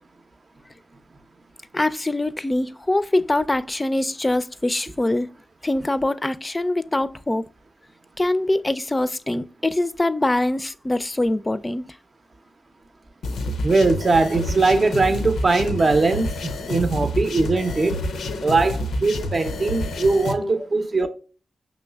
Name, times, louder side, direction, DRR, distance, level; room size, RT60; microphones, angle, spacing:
voice 1, 1.7-5.3 5.6-7.5 8.2-12.0 20.4-20.7, left 1 dB, 25° left, 0.4 m, -23 dB
sound 1, 13.2-20.3, left 1 dB, 85° left, 0.5 m, -28 dB
voice 2, 13.6-18.0 18.4-21.1, right 3 dB, 50° right, 0.6 m, -20 dB
5.2 x 3.1 x 2.2 m
supercardioid pair, 45°, 0 cm